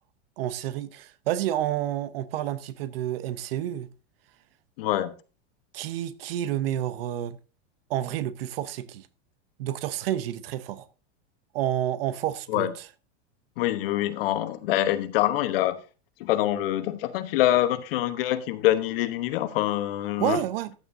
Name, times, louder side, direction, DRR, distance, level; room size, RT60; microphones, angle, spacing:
voice 1, 0.4-3.9 5.7-7.4 7.9-9.1 9.6-10.9 11.5-12.9 20.2-20.7, right 12 dB, 60° right, 0.9 m, -29 dB
voice 2, 4.8-5.1 12.5-12.7 13.6-15.8 16.2-20.4, left 14 dB, 60° left, 1.1 m, -25 dB
14.5 x 9.2 x 2.7 m
supercardioid pair, 160°, 33 cm